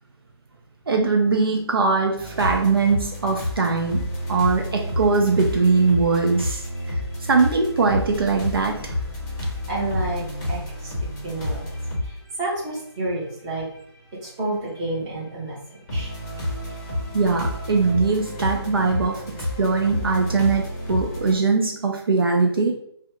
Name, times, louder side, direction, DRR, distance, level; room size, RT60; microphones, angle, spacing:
voice 1, 0.9-4.0 4.3-7.0 7.3-8.9 17.1-22.7, right 4 dB, 55° right, 1 dB, 0.5 m, -21 dB
sound 1, 2.2-12.1 12.7-12.8 13.7-13.8 15.9-21.3, left 1 dB, 15° left, 0.8 m, -29 dB
voice 2, 9.7-11.7 12.0-13.7 14.1-16.1, right 2 dB, 15° right, -6 dB, 0.8 m, -30 dB
2.7 x 2.1 x 3.5 m, 0.67 s
figure-of-eight pair, 155°, 14 cm